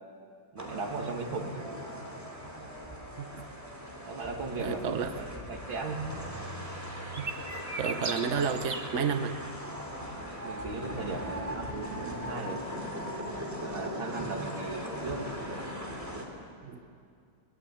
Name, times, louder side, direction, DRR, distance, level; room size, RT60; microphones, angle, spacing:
voice 1, 0.5-1.7 4.1-6.2 10.4-12.7 13.6-15.3, right 3 dB, 70° right, 2 dB, 2.9 m, -37 dB
sound 1, 0.6-16.3, equal, 10° right, 3.0 m, -39 dB
voice 2, 4.6-5.1 7.2-7.3 7.8-9.4 16.6-16.8, right 6 dB, 45° right, 8 dB, 1.0 m, -31 dB
sound 2, 7.1-8.9, right 3 dB, 25° right, 1.4 m, -37 dB
22.5 x 21.5 x 8.7 m, 2.4 s
omnidirectional pair, 2.2 m